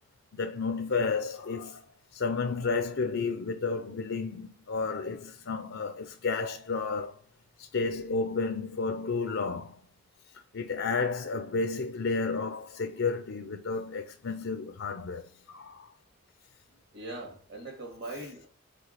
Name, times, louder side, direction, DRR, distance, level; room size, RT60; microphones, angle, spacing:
voice 1, 0.3-1.8 2.1-7.2 7.6-9.8 10.5-15.9, left 4 dB, 70° left, 0.6 m, -32 dB
voice 2, 16.9-18.5, right 2 dB, 55° right, 2.2 m, -41 dB
5.0 x 4.3 x 5.6 m
head